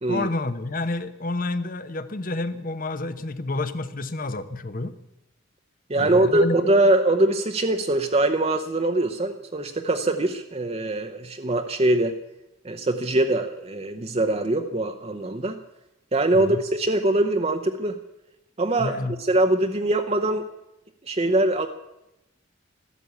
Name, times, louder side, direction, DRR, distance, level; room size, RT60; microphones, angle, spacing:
voice 1, 0.1-4.9 5.9-6.7 16.3-16.6 18.8-19.2, left 2 dB, 45° left, 12 dB, 0.9 m, -29 dB
voice 2, 5.9-12.2 12.6-15.6 16.1-18.0 18.6-20.4 21.0-21.7, right 2 dB, 30° right, 5 dB, 0.8 m, -23 dB
13.5 x 12.5 x 8.4 m, 0.90 s
head